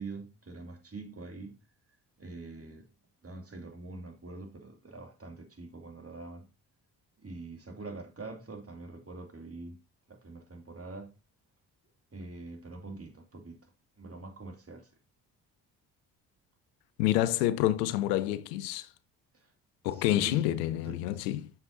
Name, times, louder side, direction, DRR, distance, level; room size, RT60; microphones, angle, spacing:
voice 1, 0.0-1.6 2.2-2.8 3.2-6.5 7.2-9.8 10.1-11.1 12.1-13.7 14.0-14.9 19.3-19.5 19.9-20.4 20.8-20.9, right 3 dB, 30° right, 2.5 m, -44 dB
voice 2, 17.0-18.9 19.8-21.5, left 14 dB, 90° left, 0.5 m, -28 dB
7.0 x 5.9 x 2.6 m
hypercardioid pair, 45°, 47 cm